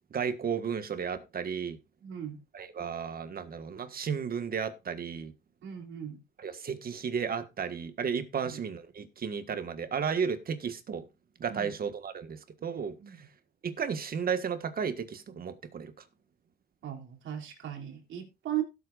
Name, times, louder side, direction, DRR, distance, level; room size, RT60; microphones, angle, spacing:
voice 1, 0.1-1.8 2.5-5.3 6.4-11.1 11.4-13.0 13.6-15.9, right 6 dB, 50° right, 1.6 m, -33 dB
voice 2, 2.0-2.4 5.6-6.2 8.4-8.6 11.5-11.7 13.0-13.2 16.8-18.6, right 11 dB, 75° right, 3.2 m, -37 dB
16.5 x 8.3 x 2.5 m
cardioid pair, 90°, 20 cm